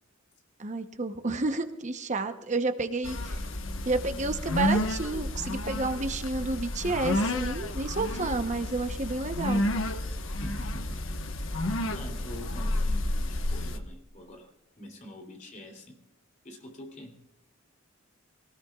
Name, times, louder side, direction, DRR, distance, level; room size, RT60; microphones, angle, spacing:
voice 1, 0.6-3.4 3.9-9.6, right 3 dB, 35° right, 8 dB, 1.0 m, -30 dB
sound 1, 3.0-13.8, left 1 dB, 70° left, 1.3 m, -31 dB
voice 2, 10.4-11.0 11.9-14.5 14.8-16.0 16.4-17.2, left 1 dB, 40° left, 3 dB, 3.1 m, -45 dB
24.5 x 18.5 x 2.4 m, 0.95 s
head